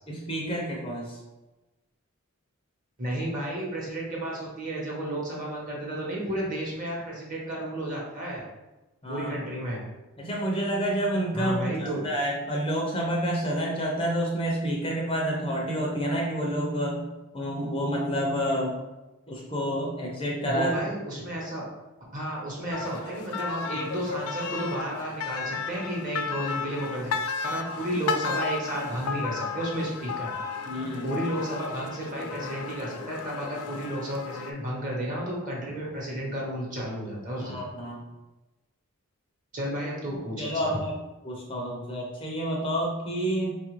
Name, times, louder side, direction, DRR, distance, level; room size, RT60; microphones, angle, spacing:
voice 1, 0.1-1.2 9.0-9.3 10.2-17.1 17.3-18.7 19.3-20.7 23.7-23.9 30.7-31.1 37.4-38.0 40.4-41.0 41.2-43.6, equal, 25° left, -2 dB, 0.5 m, -29 dB
voice 2, 3.0-8.4 9.1-9.8 11.3-12.1 20.5-21.7 22.1-27.1 27.4-30.3 31.0-37.6 39.5-40.7, right 1 dB, 35° right, -4 dB, 1.0 m, -32 dB
sound 1, 22.7-34.5, left 5 dB, 85° left, 0.4 m, -34 dB
4.2 x 2.4 x 3.1 m, 1.1 s
head